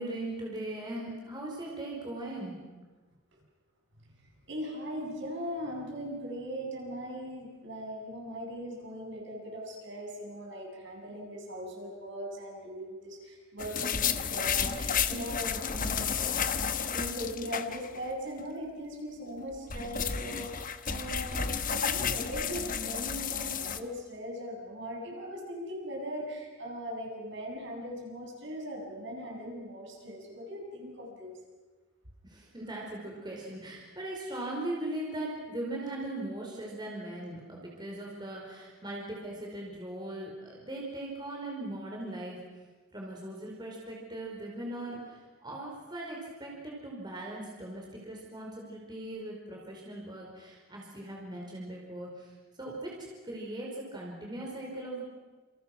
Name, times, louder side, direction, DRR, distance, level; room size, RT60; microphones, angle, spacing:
voice 1, 0.0-2.5 32.2-42.4 42.9-52.3 52.6-52.9 53.2-55.0, right 1 dB, 20° right, -2 dB, 5.0 m, -39 dB
voice 2, 4.2-16.6 16.9-31.3, equal, 60° right, 0 dB, 7.5 m, -39 dB
sound 1, 13.6-18.1 18.4-18.5 19.4-23.8, left 7 dB, 40° left, 1.2 m, -32 dB
28.5 x 28.0 x 6.2 m, 1.3 s
head